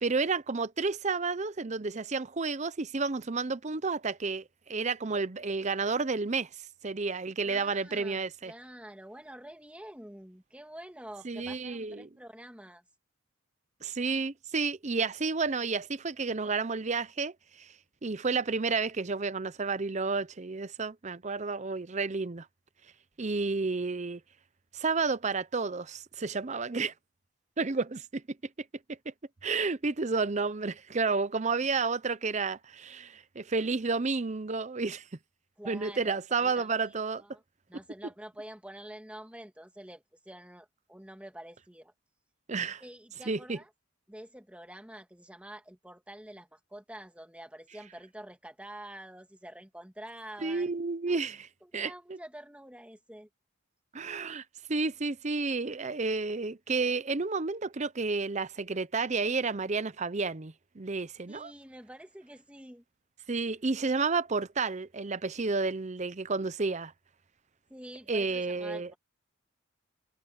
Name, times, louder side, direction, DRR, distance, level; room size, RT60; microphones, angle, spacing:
voice 1, 0.0-6.5 6.8-8.5 11.2-12.1 13.8-17.3 17.6-17.7 18.0-22.5 23.2-24.2 24.7-26.9 27.6-28.2 29.4-35.0 35.7-37.2 42.5-42.8 43.3-43.6 50.4-51.5 51.7-51.9 53.9-54.4 54.7-61.5 63.3-66.9 68.1-68.9, right 4 dB, 35° right, 0.7 m, -31 dB
voice 2, 7.4-12.8 27.6-27.7 35.6-37.4 37.7-41.9 42.8-43.7 44.1-50.7 51.1-51.3 51.6-53.3 61.3-62.8 67.7-69.0, right 1 dB, 5° right, 2.0 m, -47 dB
head